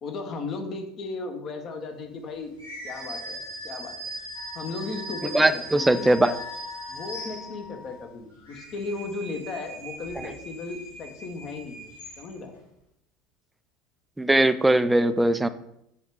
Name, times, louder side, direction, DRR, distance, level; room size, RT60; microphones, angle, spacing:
voice 1, 0.0-2.5 2.8-3.9 4.5-6.1 6.9-11.9 12.2-12.5, left 3 dB, 45° left, 4 dB, 1.0 m, -35 dB
sound 1, 2.6-7.8 8.3-12.6, right 1 dB, 80° left, 1.9 m, -40 dB
Wind instrument woodwind instrument, 4.3-8.2, left 4 dB, 10° left, 1.3 m, -44 dB
voice 2, 5.3-6.3 14.2-15.5, right 1 dB, 10° right, 12 dB, 0.4 m, -20 dB
6.3 x 3.3 x 4.7 m, 0.79 s
figure-of-eight pair, 70°, 0 cm